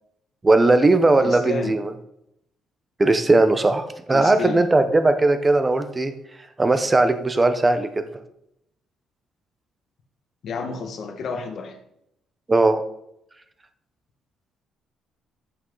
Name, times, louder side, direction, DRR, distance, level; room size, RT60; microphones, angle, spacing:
voice 1, 0.4-1.9 3.0-6.1 6.6-8.0 12.5-12.8, right 2 dB, 15° right, 9 dB, 0.9 m, -18 dB
voice 2, 1.2-1.8 4.1-4.7 10.4-11.8, left 5 dB, 50° left, 5 dB, 1.6 m, -30 dB
14.0 x 5.7 x 3.9 m, 0.77 s
cardioid pair, 135°, 0 cm